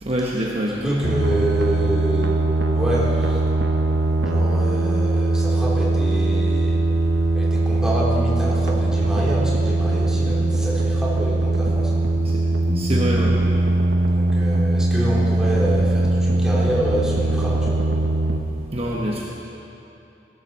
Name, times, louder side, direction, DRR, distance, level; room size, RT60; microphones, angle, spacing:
voice 1, 0.0-0.9 12.2-12.4 12.7-13.4 18.7-19.3, right 1 dB, 35° right, -3 dB, 1.1 m, -25 dB
voice 2, 0.8-3.5 4.2-6.8 7.3-12.1 14.1-17.9 18.8-19.0, right 1 dB, 5° right, -7 dB, 3.1 m, -27 dB
sound 1, 1.0-18.4, right 2 dB, 85° right, 1.1 m, -20 dB
17.5 x 13.5 x 4.2 m, 2.8 s
head